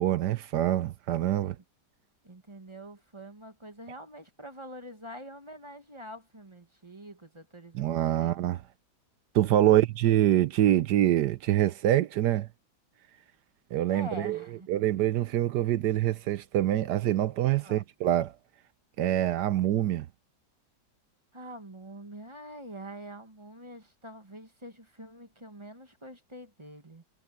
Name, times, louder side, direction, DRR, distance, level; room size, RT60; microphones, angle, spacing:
voice 1, 0.0-1.6 7.7-8.6 9.3-12.5 13.7-14.4 14.7-18.3 19.0-20.1, right 13 dB, 80° right, 1.3 m, -25 dB
voice 2, 2.2-8.3 13.9-14.7 17.6-17.8 21.3-27.0, right 1 dB, 20° right, 1.5 m, -45 dB
omnidirectional pair, 1.8 m